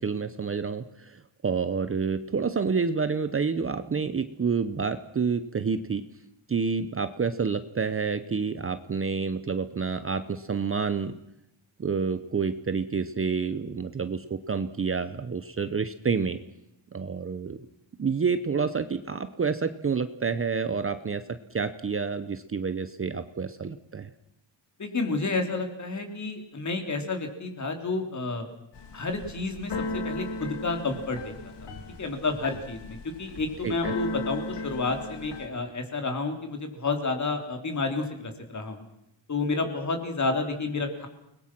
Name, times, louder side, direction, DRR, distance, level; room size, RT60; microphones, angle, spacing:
voice 1, 0.0-6.1 6.5-11.2 11.8-16.4 16.9-17.6 18.0-21.2 21.5-24.1 33.6-33.9, right 5 dB, 30° right, 11 dB, 0.8 m, -28 dB
voice 2, 24.8-28.5 28.9-29.7 30.0-31.5 32.0-38.8 39.3-41.1, left 3 dB, 35° left, 5 dB, 3.3 m, -30 dB
Keyboard (musical), 28.7-35.5, left 2 dB, 60° left, 2.8 m, -36 dB
29.5 x 20.5 x 6.1 m, 0.82 s
wide cardioid pair, 170°, 47 cm